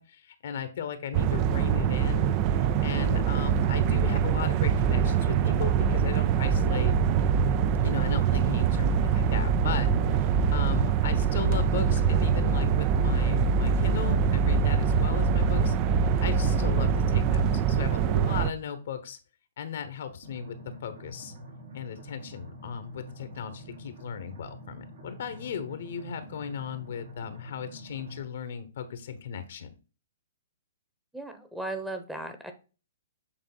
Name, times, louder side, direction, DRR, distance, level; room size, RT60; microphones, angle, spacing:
voice 1, 0.0-6.9 7.8-19.2 19.6-21.3 21.7-29.7, left 7 dB, 65° left, 10 dB, 1.0 m, -37 dB
sound 1, 1.1-18.5, right 6 dB, 35° right, 0.4 m, -24 dB
sound 2, 20.2-28.2, equal, 75° right, 3.2 m, -46 dB
voice 2, 31.1-32.5, right 2 dB, 5° right, 7 dB, 1.0 m, -36 dB
7.8 x 3.5 x 4.0 m, 0.33 s
hypercardioid pair, 130°, 0 cm